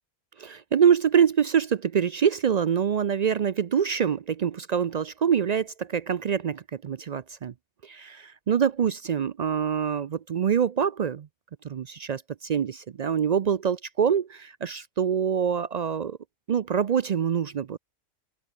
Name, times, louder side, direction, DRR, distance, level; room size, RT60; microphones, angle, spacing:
voice 1, 0.4-7.5 7.8-11.3 11.6-16.2 16.5-17.8, right 7 dB, 65° right, 0.4 m, -25 dB
open air
omnidirectional pair, 1.3 m